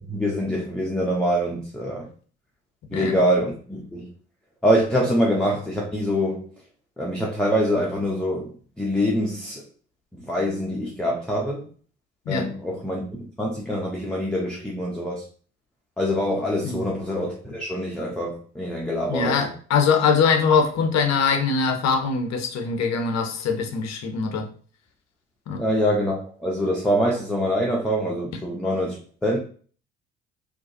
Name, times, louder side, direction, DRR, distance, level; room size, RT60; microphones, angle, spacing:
voice 1, 0.0-2.1 2.9-4.1 4.6-6.5 7.0-9.6 10.2-11.7 12.3-13.0 13.4-15.2 16.0-19.5 25.6-29.4, equal, 5° left, -3 dB, 0.6 m, -25 dB
voice 2, 19.1-24.5 25.5-25.6, left 5 dB, 50° left, 5 dB, 0.7 m, -22 dB
2.4 x 2.2 x 2.7 m, 0.43 s
hypercardioid pair, 50°, 35 cm